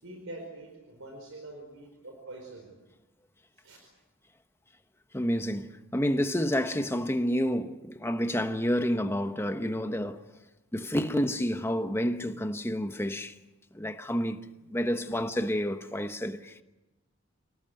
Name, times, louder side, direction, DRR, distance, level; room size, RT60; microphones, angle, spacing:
voice 1, 0.0-2.7 3.6-3.8 15.1-15.2, right 2 dB, 75° right, 4.7 m, -45 dB
voice 2, 5.1-10.2 10.7-13.3 13.7-14.4 14.7-16.6, equal, 10° left, 1.1 m, -29 dB
28.5 x 18.5 x 7.8 m
head